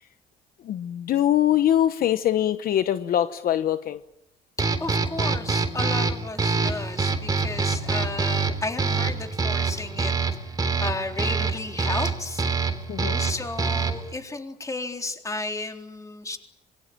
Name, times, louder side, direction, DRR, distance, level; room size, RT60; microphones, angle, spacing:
voice 1, 0.6-4.0 12.9-13.2, left 11 dB, 60° left, 10 dB, 1.1 m, -23 dB
voice 2, 4.6-10.1 10.5-12.4 13.2-16.4, left 3 dB, 20° left, 4 dB, 3.8 m, -33 dB
sound 1, 4.6-14.1, right 4 dB, 20° right, 3.6 m, -26 dB
26.5 x 23.0 x 8.9 m, 0.82 s
cardioid pair, 110°, 17 cm